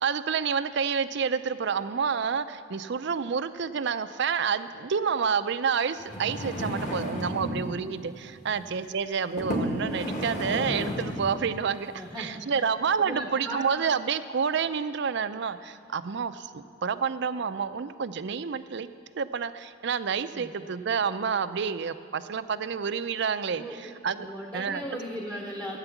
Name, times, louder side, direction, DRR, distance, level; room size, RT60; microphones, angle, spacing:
voice 1, 0.0-18.9 19.2-24.3 24.5-24.8, right 6 dB, 60° right, 13 dB, 0.5 m, -29 dB
sound 1, 6.0-7.7 8.5-8.7 9.4-11.4 12.0-12.1, equal, 35° left, 2.2 m, -32 dB
voice 2, 11.9-12.6 13.0-13.6 20.3-20.6 23.5-25.8, equal, 10° left, 0 dB, 1.0 m, -38 dB
13.5 x 9.0 x 7.1 m, 2.5 s
head